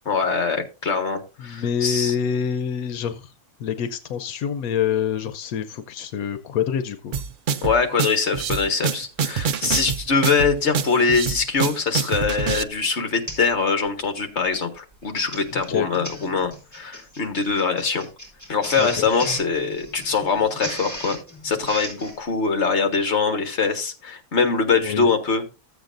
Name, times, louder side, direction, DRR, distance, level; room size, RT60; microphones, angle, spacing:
voice 1, 0.0-2.1 7.6-18.1 18.5-21.2 21.4-25.5, left 5 dB, 55° left, 6 dB, 1.7 m, -23 dB
voice 2, 1.4-3.3 3.6-7.1 15.5-15.9 18.8-19.4 24.8-25.1, left 8 dB, 85° left, 10 dB, 1.1 m, -26 dB
sound 1, 7.1-12.6, right 6 dB, 75° right, 0.4 m, -26 dB
Printer, 10.1-10.2 11.3-11.6 12.1-12.4 12.7-12.8 13.3-13.5 13.9-14.1 14.9-22.2, equal, 10° left, 3.9 m, -37 dB
14.0 x 8.0 x 2.5 m, 0.30 s
omnidirectional pair, 1.5 m